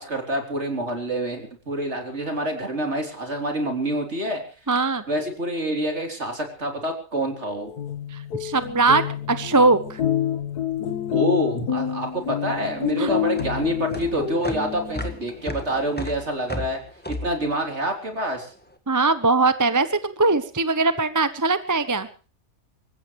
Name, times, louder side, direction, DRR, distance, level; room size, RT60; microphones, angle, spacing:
voice 1, 0.0-4.4 5.1-7.7 11.1-16.8 17.1-18.5, right 1 dB, 45° right, 3 dB, 4.0 m, -27 dB
voice 2, 4.7-5.0 8.1-10.0 13.0-13.1 18.9-22.1, right 3 dB, 15° right, 13 dB, 0.7 m, -21 dB
sound 1, 7.6-15.2, left 10 dB, 85° left, 1.8 m, -28 dB
sound 2, 12.0-18.5, left 1 dB, 5° left, 1.6 m, -35 dB
26.5 x 15.0 x 3.2 m, 0.37 s
omnidirectional pair, 1.6 m